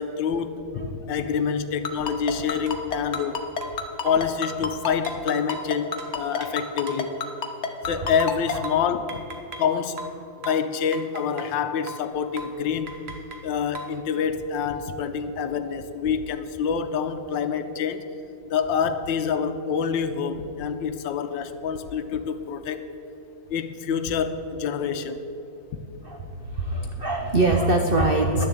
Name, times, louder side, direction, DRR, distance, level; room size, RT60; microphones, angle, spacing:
voice 1, 0.0-3.4 4.0-7.2 7.9-9.2 9.6-10.1 10.4-13.0 13.4-18.0 18.5-22.8 23.5-25.2, left 6 dB, 75° left, 9 dB, 1.4 m, -27 dB
Ringtone, 1.8-8.5, left 6 dB, 50° left, 0.9 m, -28 dB
sound 1, 2.7-2.8 3.1-3.3 3.6-4.4 5.0-7.1 8.2-9.7 10.0-11.6 11.9-12.1 12.4-12.6 12.9-14.0, right 2 dB, 40° right, 1.0 m, -39 dB
voice 2, 26.0-28.4, right 2 dB, 75° right, 3 dB, 0.5 m, -23 dB
11.0 x 7.2 x 8.1 m, 2.9 s
omnidirectional pair, 2.1 m